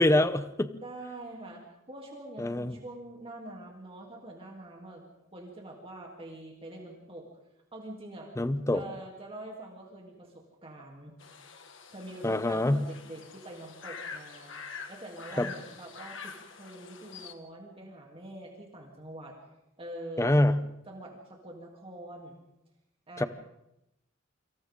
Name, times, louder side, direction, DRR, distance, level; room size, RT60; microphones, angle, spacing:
voice 1, 0.0-0.7 2.4-2.8 8.4-8.8 12.2-12.9 15.4-15.5 20.2-20.6 23.2-23.3, left 1 dB, 15° left, 13 dB, 0.8 m, -25 dB
voice 2, 0.8-1.6 1.9-5.0 5.3-7.2 7.7-8.3 8.7-11.2 11.9-19.3 19.8-20.4 20.9-22.4 23.1-23.3, right 1 dB, 30° right, -1 dB, 3.2 m, -45 dB
sound 1, 11.2-17.3, left 5 dB, 70° left, 1.9 m, -45 dB
29.0 x 26.0 x 3.8 m, 0.86 s
head